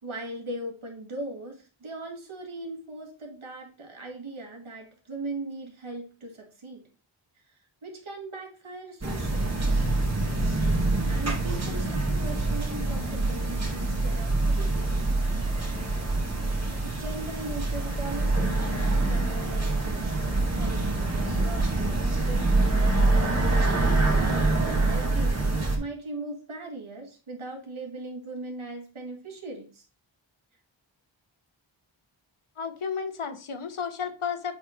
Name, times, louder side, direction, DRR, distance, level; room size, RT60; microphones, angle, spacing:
voice 1, 0.0-6.8 7.8-9.6 11.1-15.1 16.8-23.3 23.5-29.8, right 2 dB, 75° right, 1 dB, 1.7 m, -39 dB
sound 1, 9.0-25.8, right 2 dB, 30° right, 1.6 m, -25 dB
voice 2, 32.6-34.5, left 6 dB, 85° left, 8 dB, 1.0 m, -32 dB
7.8 x 2.9 x 5.0 m, 0.36 s
wide cardioid pair, 75°, 49 cm